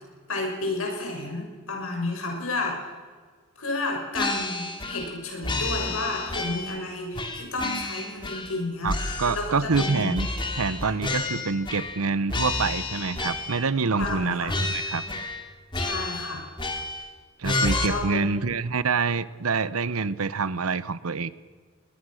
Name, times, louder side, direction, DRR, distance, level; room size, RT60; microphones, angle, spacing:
voice 1, 0.3-2.9 3.6-10.1 14.0-14.5 15.7-16.4 17.8-18.2, left 2 dB, 80° left, 2 dB, 6.4 m, -31 dB
sound 1, 4.1-5.2 5.4-6.8 7.1-8.6 8.9-12.0 12.3-13.7 14.0-14.2 14.5-15.4 15.7-17.1 17.4-17.9, left 2 dB, 25° left, 2.6 m, -30 dB
voice 2, 8.8-10.3 10.6-15.0 17.4-21.3, right 4 dB, 85° right, 16 dB, 0.9 m, -26 dB
23.0 x 19.0 x 6.4 m, 1.5 s
head